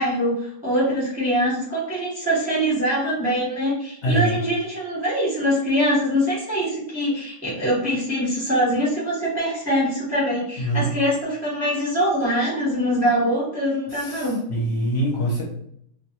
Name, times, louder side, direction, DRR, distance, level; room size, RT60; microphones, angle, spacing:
voice 1, 0.0-14.4, equal, 10° right, -6 dB, 0.6 m, -23 dB
voice 2, 4.0-4.3 10.6-10.9 13.9-15.4, right 1 dB, 60° left, -5 dB, 0.9 m, -24 dB
2.4 x 2.2 x 2.8 m, 0.70 s
omnidirectional pair, 1.6 m